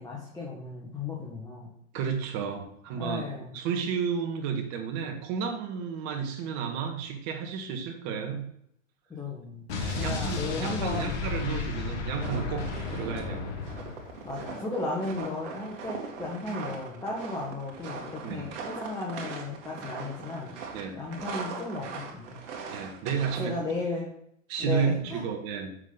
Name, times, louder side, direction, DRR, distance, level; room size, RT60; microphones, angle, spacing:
voice 1, 0.0-1.7 3.0-3.5 9.1-9.6 10.0-11.2 14.2-20.5 20.9-22.3 23.4-24.1 24.6-25.2, left 2 dB, 10° left, -3 dB, 1.6 m, -35 dB
voice 2, 1.9-8.4 9.8-13.5 18.2-18.5 20.7-21.0 22.7-23.7 24.5-25.7, right 6 dB, 45° right, 4 dB, 1.8 m, -32 dB
Explosion, 9.7-14.5, left 4 dB, 60° left, 2.5 m, -33 dB
sound 1, 11.9-23.6, right 5 dB, 65° right, 2.0 m, -41 dB
7.3 x 6.4 x 4.0 m, 0.72 s
hypercardioid pair, 110°, 38 cm